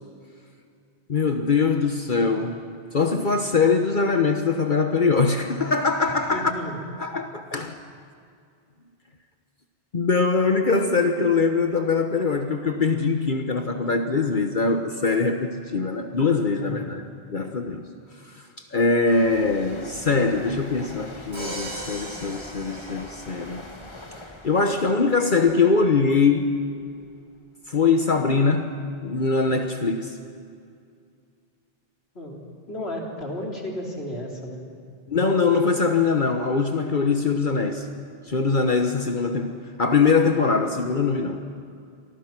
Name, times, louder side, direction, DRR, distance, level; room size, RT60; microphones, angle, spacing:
voice 1, 1.1-2.7 2.9-6.5 7.0-7.8 9.9-17.0 17.3-17.9 18.3-23.6 24.4-26.5 27.7-28.7 29.0-30.2 35.1-37.9 38.2-41.4, left 4 dB, 50° left, 5 dB, 1.3 m, -22 dB
voice 2, 6.3-6.8 16.6-16.8 22.0-22.1 32.1-34.6, equal, 80° left, -1 dB, 4.1 m, -33 dB
sound 1, 19.0-26.5 26.8-27.1, left 2 dB, 30° left, 1.6 m, -43 dB
Crash cymbal, 21.3-23.5, right 1 dB, 50° right, 5.9 m, -37 dB
29.5 x 24.0 x 6.1 m, 2.3 s
omnidirectional pair, 1.0 m